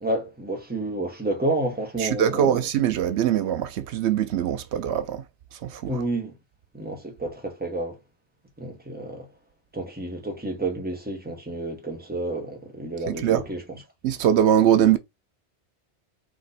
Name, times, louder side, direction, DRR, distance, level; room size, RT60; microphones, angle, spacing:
voice 1, 0.0-2.6 5.9-6.3 6.7-8.0 8.6-9.3 9.7-13.8, right 2 dB, 10° right, 1.1 m, -30 dB
voice 2, 2.0-5.2 5.6-5.9 13.1-13.4 14.0-15.0, right 10 dB, 85° right, 0.9 m, -22 dB
3.7 x 3.0 x 4.1 m
omnidirectional pair, 1.1 m